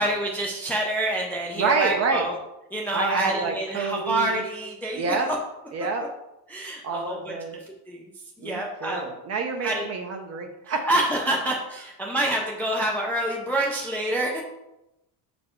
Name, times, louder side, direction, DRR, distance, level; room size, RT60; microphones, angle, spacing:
voice 1, 0.0-2.3 2.7-5.3 6.5-8.1 8.4-9.0 9.6-9.8 10.9-14.4, right 1 dB, 5° left, -1 dB, 0.3 m, -27 dB
voice 2, 1.6-2.3 2.9-4.4 4.9-5.3 5.7-6.0 6.8-7.6 8.4-10.9, right 4 dB, 35° right, 4 dB, 0.6 m, -28 dB
5.4 x 4.3 x 4.3 m, 0.92 s
cardioid pair, 155°, 45 cm